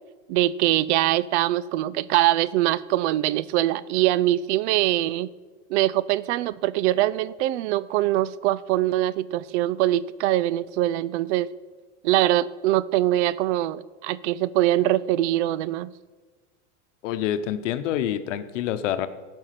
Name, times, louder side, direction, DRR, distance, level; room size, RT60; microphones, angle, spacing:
voice 1, 0.3-5.3 5.7-11.5 12.0-15.9, right 14 dB, 65° right, 19 dB, 0.5 m, -23 dB
voice 2, 17.0-19.1, left 10 dB, 80° left, 11 dB, 0.9 m, -27 dB
16.0 x 5.5 x 5.8 m, 1.4 s
supercardioid pair, 125°, 37 cm